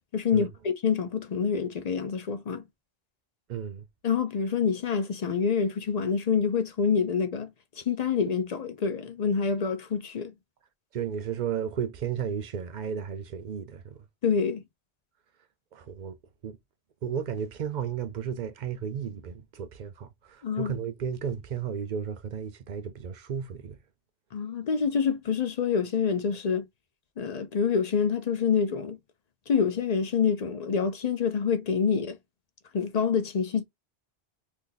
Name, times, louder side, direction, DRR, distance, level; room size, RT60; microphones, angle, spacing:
voice 1, 0.1-2.6 4.0-7.5 7.8-10.3 14.2-14.6 20.4-20.7 24.3-26.7 27.2-29.0 29.5-32.2 32.7-33.6, left 6 dB, 50° left, 0.5 m, -27 dB
voice 2, 3.5-3.8 10.9-14.0 15.7-16.2 16.4-16.6 17.0-23.8, right 7 dB, 55° right, 0.6 m, -33 dB
2.7 x 2.6 x 3.8 m
omnidirectional pair, 1.0 m